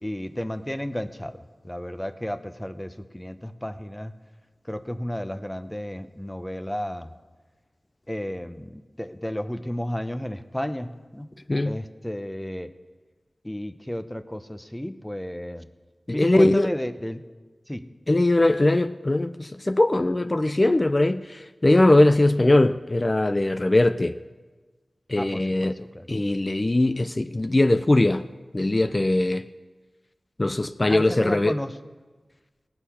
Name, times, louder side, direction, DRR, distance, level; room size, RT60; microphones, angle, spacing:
voice 1, 0.0-4.1 4.7-7.1 8.1-11.3 11.6-12.7 13.4-15.7 16.1-17.2 17.7-17.9 25.2-26.2 30.9-31.8, equal, 10° left, 0.8 m, -33 dB
voice 2, 16.1-16.7 18.1-24.2 25.1-25.7 26.1-28.3 28.5-29.5 30.4-31.6, left 2 dB, 35° left, 0.4 m, -20 dB
19.0 x 6.5 x 5.7 m
cardioid pair, 45°, 0 cm